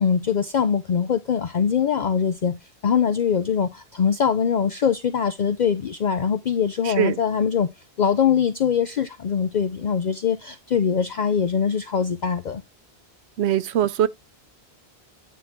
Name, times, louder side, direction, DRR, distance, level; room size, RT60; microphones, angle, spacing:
voice 1, 0.0-7.7 8.0-12.6, left 7 dB, 50° left, 0.6 m, -22 dB
voice 2, 6.8-7.2 13.4-14.1, right 10 dB, 85° right, 0.9 m, -21 dB
9.2 x 3.9 x 4.4 m
omnidirectional pair, 1.1 m